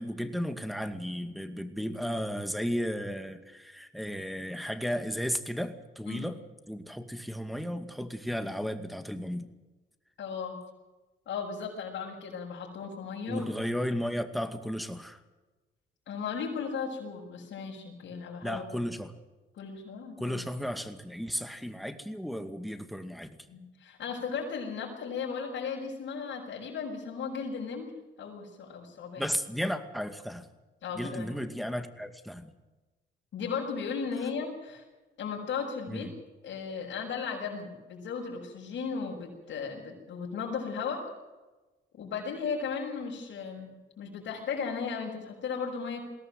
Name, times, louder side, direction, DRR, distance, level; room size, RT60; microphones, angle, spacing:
voice 1, 0.0-6.4 6.7-9.5 13.3-15.2 18.4-19.1 20.2-23.5 29.2-30.5 30.9-32.5 35.9-36.1, equal, ahead, 9 dB, 2.3 m, -34 dB
voice 2, 10.2-10.6 11.3-13.5 16.1-18.6 19.6-20.4 23.5-27.9 28.2-29.3 30.8-31.3 33.3-34.8 35.2-36.1 36.4-41.0 41.9-43.7 44.0-46.0, left 6 dB, 70° left, -5 dB, 6.5 m, -36 dB
21.5 x 17.5 x 7.8 m, 1.2 s
cardioid pair, 90°, 20 cm